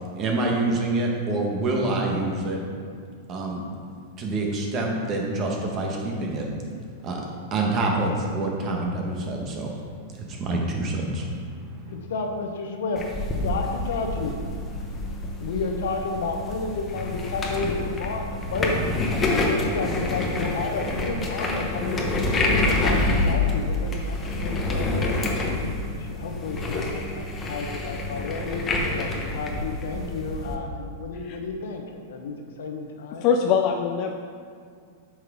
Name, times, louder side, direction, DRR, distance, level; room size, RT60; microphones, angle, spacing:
voice 1, 0.2-2.6 3.3-3.6 4.2-6.5 7.0-7.2 7.5-9.7 10.1-11.8, right 2 dB, 30° right, 0 dB, 1.3 m, -26 dB
voice 2, 11.9-13.0 13.4-14.4 15.4-18.8 19.4-25.5 26.0-28.6 29.0-33.7, left 4 dB, 75° left, 3 dB, 1.0 m, -31 dB
sound 1, 13.0-30.6, left 2 dB, 15° left, 0.9 m, -27 dB
voice 3, 33.2-34.2, left 7 dB, 40° left, 4 dB, 0.4 m, -22 dB
8.9 x 6.1 x 3.7 m, 2.2 s
supercardioid pair, 150°, 0 cm